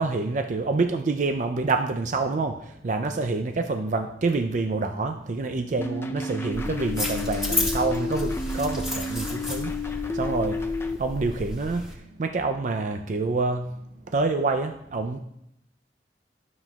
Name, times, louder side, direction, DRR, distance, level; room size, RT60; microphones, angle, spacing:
voice 1, 0.0-13.7 14.1-15.2, right 3 dB, 45° right, 6 dB, 0.4 m, -27 dB
sound 1, 5.8-11.0, left 3 dB, 15° left, 0.5 m, -31 dB
sound 2, 6.5-11.9, left 1 dB, ahead, 1.7 m, -32 dB
12.0 x 7.3 x 2.3 m, 0.80 s
head